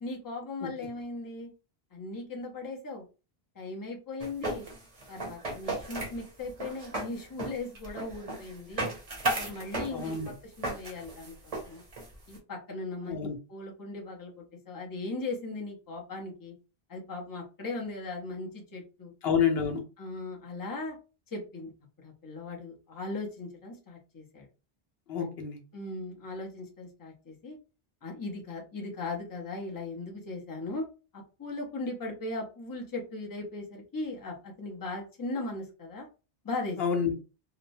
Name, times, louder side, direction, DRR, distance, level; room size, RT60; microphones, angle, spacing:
voice 1, 0.0-1.5 1.9-3.0 3.5-4.6 5.1-8.9 9.4-11.8 12.3-16.5 16.9-19.1 20.0-21.0 21.3-21.7 22.0-24.4 25.7-27.6 28.0-30.8 31.1-36.1 36.4-36.8, left 2 dB, 25° left, -1 dB, 0.6 m, -38 dB
sound 1, 4.2-12.4, right 2 dB, 40° right, 0.8 m, -35 dB
voice 2, 9.9-10.3 13.0-13.3 19.2-19.8 25.1-25.6 36.8-37.1, left 7 dB, 75° left, 3 dB, 0.9 m, -28 dB
3.0 x 2.0 x 2.6 m, 0.33 s
omnidirectional pair, 1.1 m